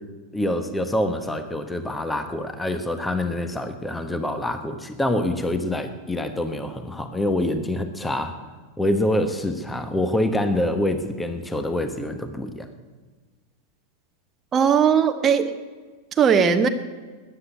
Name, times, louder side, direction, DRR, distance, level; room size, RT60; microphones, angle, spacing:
voice 1, 0.3-8.4 8.8-12.7, left 1 dB, 10° left, 9 dB, 1.2 m, -26 dB
voice 2, 14.5-15.5 16.2-16.7, right 7 dB, 25° right, 7 dB, 0.9 m, -18 dB
13.5 x 9.8 x 8.1 m, 1.4 s
figure-of-eight pair, 90°, 0 cm